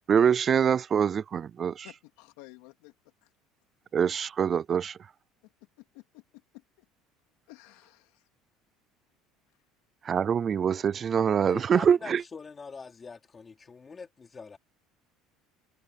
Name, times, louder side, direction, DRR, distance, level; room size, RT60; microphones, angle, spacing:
voice 1, 0.1-1.9 3.9-5.0 10.0-12.2, right 7 dB, 25° right, 0.4 m, -24 dB
voice 2, 1.8-2.9 3.2-3.3 5.8-6.8 7.5-8.2, left 21 dB, 90° left, 3.1 m, -52 dB
voice 3, 11.4-14.6, left 5 dB, 15° left, 3.7 m, -44 dB
cardioid pair, 170°, 0 cm